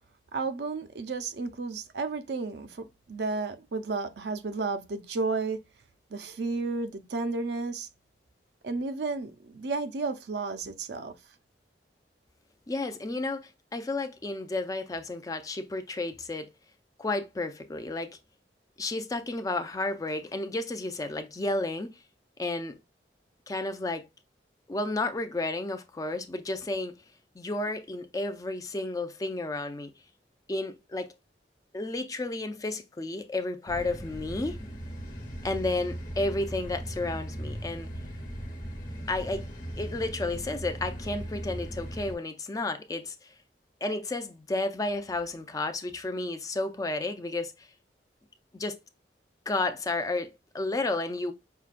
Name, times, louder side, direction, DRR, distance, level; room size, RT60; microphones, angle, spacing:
voice 1, 0.3-5.6 6.1-7.9 8.6-11.1, right 3 dB, 70° right, 0.5 m, -32 dB
voice 2, 12.7-16.5 17.0-18.2 18.8-22.0 22.4-22.7 23.5-24.1 24.7-26.9 27.4-29.9 30.5-31.1 31.7-34.6 35.4-37.9 39.1-39.5 39.8-43.3 43.8-47.7 48.5-48.8 49.5-51.3, left 2 dB, 20° left, 0.4 m, -32 dB
sound 1, 33.7-42.2, equal, 50° left, 1.1 m, -38 dB
5.6 x 2.2 x 2.5 m
head